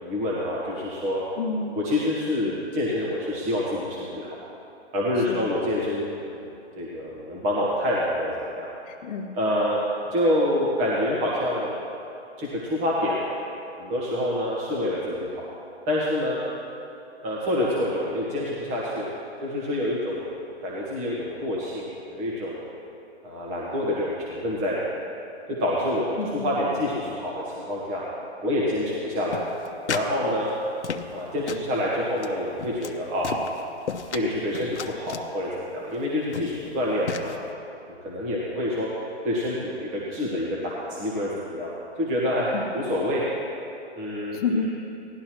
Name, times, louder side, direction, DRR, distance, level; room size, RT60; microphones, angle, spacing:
voice 1, 0.0-1.2 1.7-4.3 4.9-6.5 6.8-8.7 9.3-9.8 10.1-11.8 12.4-13.4 13.8-15.5 15.9-16.4 17.2-19.1 19.4-20.3 20.6-22.6 23.2-24.8 25.5-26.1 26.4-28.0 28.4-29.5 29.9-30.5 31.1-33.3 34.1-37.3 38.0-38.9 39.2-41.7 42.0-43.2 44.0-44.7, left 1 dB, 20° right, -5 dB, 1.4 m, -27 dB
voice 2, 1.4-1.7 5.3-5.4 8.9-9.3 26.2-26.6 42.5-42.6 44.3-44.7, left 4 dB, 35° left, 2 dB, 1.2 m, -28 dB
sound 1, 29.3-30.2 30.4-31.2 31.5-31.7 32.2-32.3 32.6-33.0 33.2-34.2 34.5-35.3 35.9-36.0 36.3-36.7 37.1-37.4, left 7 dB, 75° left, 0.9 m, -33 dB
17.5 x 12.0 x 3.0 m, 2.7 s
hypercardioid pair, 150°, 34 cm